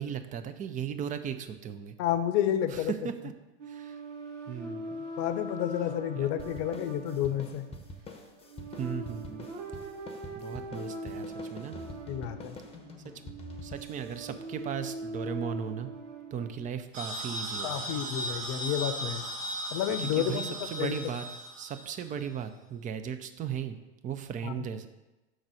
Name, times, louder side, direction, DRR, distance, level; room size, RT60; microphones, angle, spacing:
voice 1, 0.0-1.9 2.7-3.3 3.7-4.0 4.5-5.1 6.1-6.3 8.8-9.5 10.3-11.8 13.6-15.9 16.3-18.0 18.4-18.6 20.0-21.3 21.6-23.8 24.0-24.9, right 8 dB, 25° right, 9 dB, 0.5 m, -37 dB
voice 2, 2.0-2.9 5.2-7.6 12.1-12.6 17.6-19.2 19.7-20.5 20.8-21.0 24.4-24.5, left 10 dB, 45° left, 10 dB, 0.7 m, -30 dB
sound 1, 3.6-16.5, right 1 dB, 80° right, 1.1 m, -41 dB
sound 2, 6.4-15.2, left 2 dB, 15° left, 0.9 m, -47 dB
sound 3, 16.9-22.2, right 1 dB, 60° right, 1.9 m, -37 dB
6.3 x 4.0 x 6.2 m, 1.0 s
hypercardioid pair, 100°, 35 cm